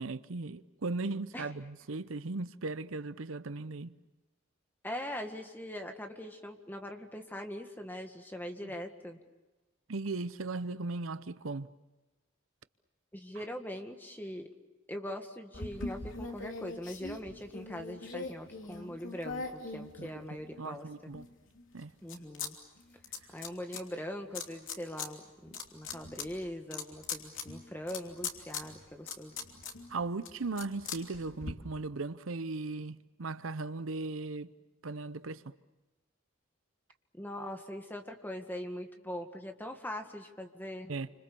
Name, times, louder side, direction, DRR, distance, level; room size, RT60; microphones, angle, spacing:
voice 1, 0.0-3.9 8.6-8.7 9.9-11.7 13.4-13.5 20.0-20.3 20.6-21.3 21.7-21.9 29.9-34.5 34.8-35.5 40.9-41.1, right 3 dB, 85° right, 0.8 m, -37 dB
voice 2, 4.8-9.2 13.1-14.5 14.9-20.9 22.0-22.6 23.3-29.3 37.1-40.9, left 1 dB, 10° left, 1.8 m, -41 dB
sound 1, 15.5-20.6 21.1-22.5 22.8-23.8 24.3-25.1 25.4-31.5, left 4 dB, 75° left, 3.0 m, -41 dB
29.5 x 26.0 x 7.0 m
head